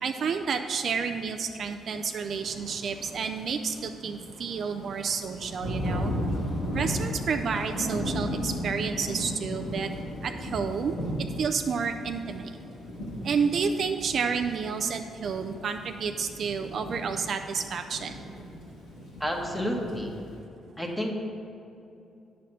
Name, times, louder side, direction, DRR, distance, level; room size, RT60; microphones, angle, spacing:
voice 1, 0.0-6.1 6.7-9.9 10.2-11.0 11.4-12.5 13.2-18.2, right 6 dB, 55° right, 6 dB, 0.4 m, -30 dB
Thunder / Rain, 2.3-20.4, equal, 90° left, 2.1 m, -36 dB
voice 2, 19.2-20.1 20.8-21.1, equal, ahead, 0 dB, 1.3 m, -30 dB
9.0 x 4.2 x 6.4 m, 2.8 s
cardioid pair, 90°, 0 cm